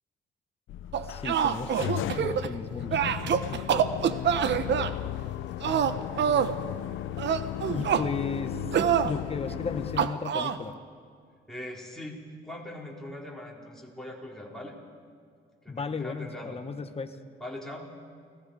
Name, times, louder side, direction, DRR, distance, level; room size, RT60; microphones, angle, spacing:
sound 1, 0.7-10.1, left 12 dB, 80° left, 0.7 m, -35 dB
sound 2, 0.9-2.5 2.9-4.9 5.6-6.6 7.2-8.1 8.7-9.1 10.0-10.6, right 8 dB, 65° right, 1.0 m, -26 dB
voice 1, 1.0-3.2 3.5-3.9 7.7-8.6 9.0-10.8 15.7-17.2, left 4 dB, 30° left, 7 dB, 1.5 m, -35 dB
voice 2, 11.5-14.8 15.6-16.6 17.4-18.0, left 1 dB, ahead, -3 dB, 4.8 m, -41 dB
29.5 x 18.5 x 5.0 m, 2.2 s
cardioid pair, 90°, 20 cm